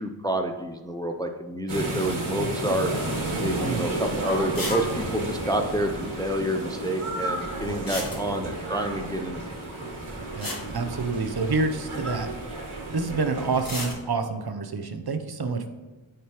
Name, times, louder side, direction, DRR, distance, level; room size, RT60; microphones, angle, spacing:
voice 1, 0.0-2.9 3.4-9.6, right 1 dB, 10° left, 5 dB, 0.4 m, -28 dB
sound 1, 1.7-13.9, right 2 dB, 75° right, 1.9 m, -32 dB
sound 2, 3.2-3.4 3.8-3.9 4.5-4.9 5.1-5.2 5.4-5.5 7.7-8.6 10.0-10.1 10.4-11.6 13.5-14.0, left 1 dB, 45° left, 1.5 m, -34 dB
voice 2, 10.4-12.3 12.9-15.7, right 4 dB, 50° right, 8 dB, 0.6 m, -28 dB
8.9 x 4.8 x 2.9 m, 1.2 s
wide cardioid pair, 70°, 49 cm